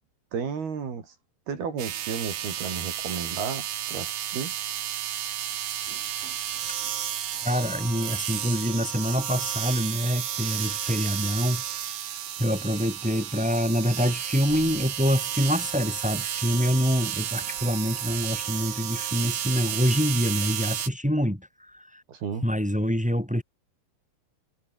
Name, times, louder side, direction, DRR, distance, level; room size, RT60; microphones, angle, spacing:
voice 1, 0.3-1.1 1.5-4.6 22.1-22.5, right 6 dB, 60° right, 6.1 m, -33 dB
sound 1, 1.8-20.9, right 10 dB, 80° right, 4.9 m, -32 dB
voice 2, 7.4-12.0 12.4-22.0 22.4-23.4, equal, ahead, 4.4 m, -26 dB
omnidirectional pair, 5.2 m